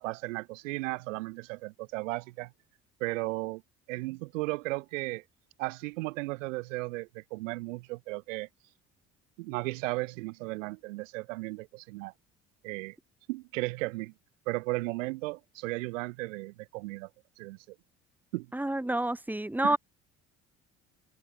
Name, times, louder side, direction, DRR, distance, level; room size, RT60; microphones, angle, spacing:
voice 1, 0.0-2.5 3.0-3.6 3.9-5.2 5.6-8.5 9.4-12.1 12.6-13.0 13.3-14.1 14.5-17.1 17.4-17.6 18.3-18.5 19.6-19.8, right 23 dB, 90° right, 1.0 m, -35 dB
voice 2, 18.5-19.8, right 1 dB, 5° right, 1.4 m, -28 dB
open air
hypercardioid pair, 70°, 37 cm